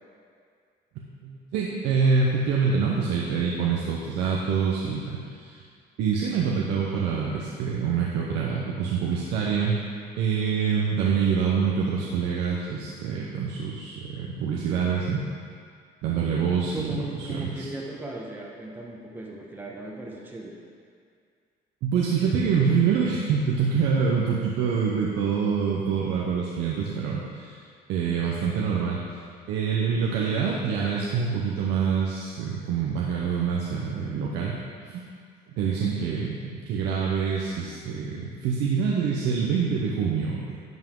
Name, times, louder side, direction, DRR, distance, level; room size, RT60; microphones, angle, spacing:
voice 1, 1.2-5.6 6.0-9.8 10.2-15.2 16.0-16.9 17.2-17.7 21.8-27.6 27.9-29.2 29.5-34.6 34.8-35.0 35.6-40.6, right 6 dB, 85° right, -3 dB, 0.9 m, -26 dB
voice 2, 16.7-20.5 36.0-36.2, right 2 dB, 10° right, -3 dB, 1.1 m, -37 dB
11.0 x 5.6 x 3.8 m, 2.2 s
cardioid pair, 110°, 17 cm